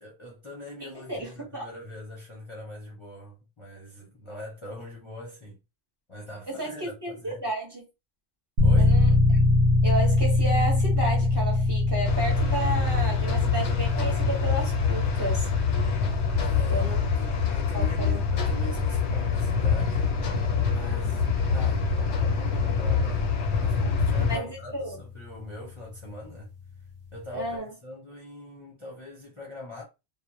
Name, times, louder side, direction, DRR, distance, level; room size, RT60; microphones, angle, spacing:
voice 1, 0.0-5.6 6.1-7.5 8.6-9.0 16.3-20.2 20.7-26.5 27.1-29.8, left 1 dB, 30° left, 0.7 m, -42 dB
voice 2, 1.1-1.6 6.5-7.8 8.8-9.1 9.8-15.5 16.7-17.0 17.7-18.4 24.3-25.0 27.3-27.7, right 1 dB, 25° right, 1.0 m, -32 dB
sound 1, 8.6-25.3, left 2 dB, 70° right, 0.9 m, -26 dB
sound 2, 12.1-24.4, left 5 dB, 85° left, 0.9 m, -26 dB
2.3 x 2.0 x 2.9 m
omnidirectional pair, 1.1 m